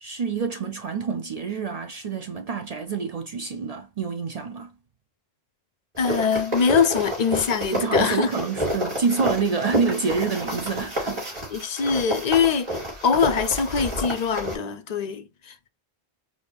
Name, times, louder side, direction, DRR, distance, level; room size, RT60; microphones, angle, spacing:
voice 1, 0.0-4.7 7.7-11.3, right 5 dB, 55° right, 0.5 m, -27 dB
voice 2, 6.0-8.3 11.5-12.8 13.0-15.7, left 6 dB, 55° left, 0.5 m, -23 dB
sound 1, 6.0-14.6, equal, 25° right, 2.8 m, -29 dB
4.8 x 2.7 x 3.4 m
omnidirectional pair, 1.1 m